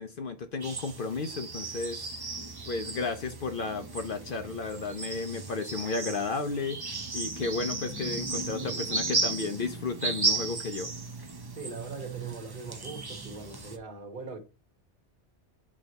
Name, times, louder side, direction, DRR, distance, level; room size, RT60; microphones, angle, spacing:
voice 1, 0.0-2.1 2.7-6.8 7.1-10.9, left 4 dB, 55° left, 0.8 m, -33 dB
sound 1, 0.6-13.8, right 3 dB, 25° right, 0.6 m, -35 dB
voice 2, 8.4-9.0 11.5-14.4, right 3 dB, 50° right, 1.4 m, -41 dB
8.5 x 3.2 x 4.0 m
omnidirectional pair, 1.2 m